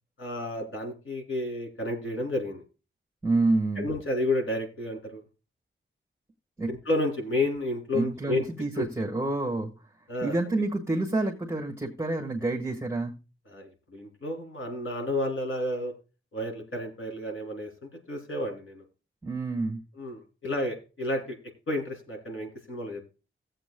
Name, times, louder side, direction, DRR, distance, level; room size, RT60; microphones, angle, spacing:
voice 1, 0.2-2.6 3.8-5.2 6.7-8.4 8.8-8.9 10.1-10.3 13.5-15.9 16.3-18.8 20.0-21.4 21.7-23.1, left 1 dB, 80° left, 2 dB, 3.2 m, -31 dB
voice 2, 3.2-3.9 6.6-6.7 7.9-9.7 10.2-13.1 19.2-19.8, right 2 dB, 10° right, 0 dB, 1.5 m, -28 dB
18.5 x 7.6 x 2.3 m, 0.32 s
wide cardioid pair, 145°, 21 cm